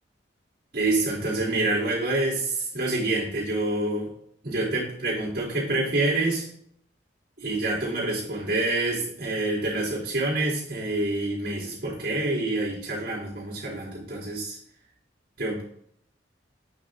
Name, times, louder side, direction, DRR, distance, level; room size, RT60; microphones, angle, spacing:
voice 1, 0.7-4.1 4.4-6.5 7.4-14.6 15.4-15.6, right 2 dB, 55° right, -9 dB, 3.7 m, -27 dB
8.6 x 6.2 x 4.0 m, 0.66 s
head